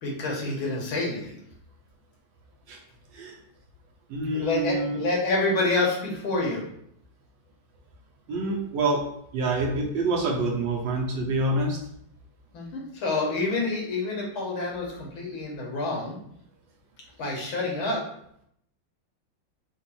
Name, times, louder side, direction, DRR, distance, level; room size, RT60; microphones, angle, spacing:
voice 1, 0.0-1.4 4.3-6.6 12.5-16.2 17.2-18.0, left 3 dB, 80° left, -2 dB, 2.0 m, -28 dB
voice 2, 4.1-5.0 8.3-9.0 9.3-11.8, right 2 dB, 70° right, -1 dB, 1.4 m, -26 dB
4.4 x 2.5 x 4.2 m, 0.70 s
omnidirectional pair, 2.2 m